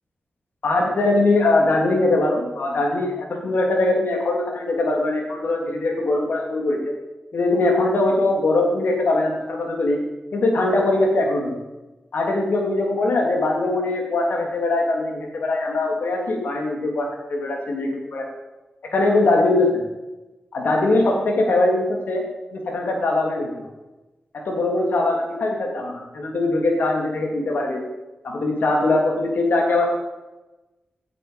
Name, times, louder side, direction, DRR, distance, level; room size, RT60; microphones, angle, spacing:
voice 1, 0.6-6.9 7.3-10.0 10.3-11.5 12.1-18.3 18.9-19.8 20.5-22.2 22.5-23.5 24.4-27.9 28.2-29.9, left 2 dB, 75° left, 1 dB, 2.9 m, -21 dB
17.0 x 10.0 x 5.2 m, 1.1 s
wide cardioid pair, 150°, 3 cm